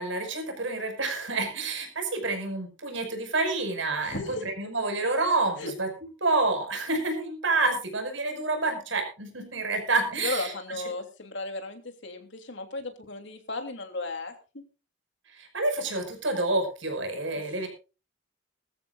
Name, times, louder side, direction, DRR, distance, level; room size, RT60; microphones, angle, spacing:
voice 1, 0.0-5.9 6.2-10.5 15.4-17.7, right 3 dB, 75° right, 5 dB, 5.6 m, -28 dB
voice 2, 4.0-4.5 5.6-5.7 10.2-14.6 17.3-17.7, left 3 dB, 65° left, 6 dB, 3.1 m, -35 dB
21.0 x 14.0 x 2.5 m, 0.32 s
head